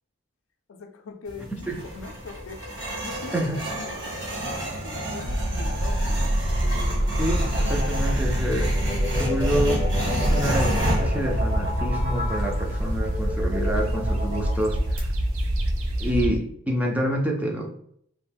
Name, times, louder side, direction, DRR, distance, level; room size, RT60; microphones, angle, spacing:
voice 1, 0.7-2.6 3.0-3.4 3.8-6.3, left 4 dB, 70° left, 7 dB, 0.4 m, -42 dB
sound 1, 1.3-16.1, equal, 60° right, 1.0 m, -31 dB
sound 2, 5.2-16.4, right 1 dB, 75° right, 0.4 m, -26 dB
sound 3, 6.5-15.0, left 2 dB, 40° right, 0.8 m, -34 dB
voice 2, 7.2-8.8 9.1-9.9 10.3-15.1 16.0-17.7, equal, 5° right, 0 dB, 0.3 m, -27 dB
2.4 x 2.1 x 3.3 m, 0.67 s
head